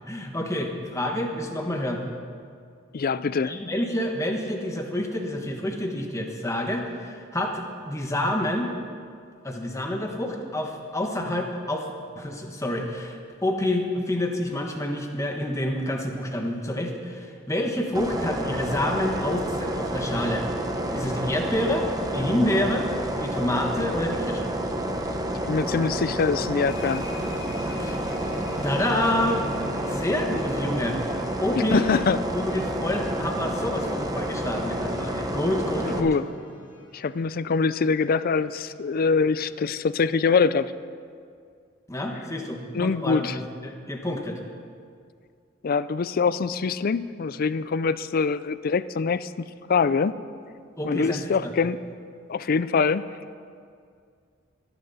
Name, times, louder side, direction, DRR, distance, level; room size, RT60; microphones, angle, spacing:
voice 1, 0.1-2.0 3.4-8.7 9.4-11.9 12.1-20.5 20.9-22.9 23.2-24.5 27.8-28.0 28.6-29.4 29.9-31.0 31.4-32.0 32.3-36.1 41.9-44.4 50.8-51.5, left 1 dB, 15° left, 2 dB, 1.4 m, -28 dB
voice 2, 2.9-3.5 25.5-27.0 31.7-32.2 36.0-36.2 36.9-40.7 42.7-43.4 45.6-49.3 49.7-50.1 50.8-51.8 52.3-53.1, left 5 dB, 50° left, 15 dB, 0.4 m, -24 dB
sound 1, 17.9-36.0, right 1 dB, 20° right, 0.9 m, -29 dB
sound 2, 26.7-40.0, equal, 75° left, 2.3 m, -44 dB
23.0 x 10.5 x 4.2 m, 2.2 s
head